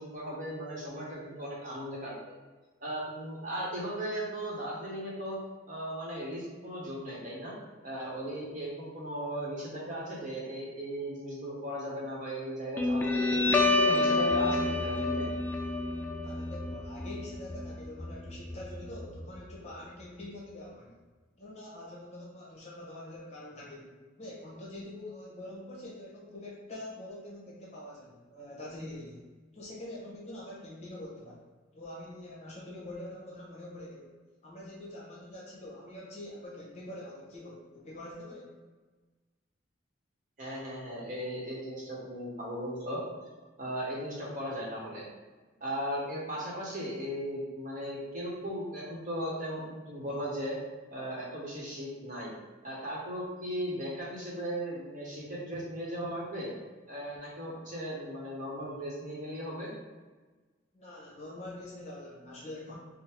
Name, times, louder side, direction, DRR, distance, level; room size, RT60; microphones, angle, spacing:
voice 1, 0.0-2.2 2.8-5.4 5.7-7.5 7.8-15.3 40.4-43.0 43.6-45.1 45.6-50.6 50.9-52.3 52.6-56.5 56.9-59.7, equal, 40° right, -4 dB, 1.0 m, -37 dB
Guitar, 12.8-19.8, left 2 dB, 10° left, 0.3 m, -29 dB
voice 2, 16.2-21.0 21.4-29.2 29.5-31.4 31.7-34.1 34.4-38.5 60.7-62.7, left 1 dB, 35° left, -5 dB, 1.0 m, -45 dB
3.7 x 2.0 x 4.4 m, 1.3 s
head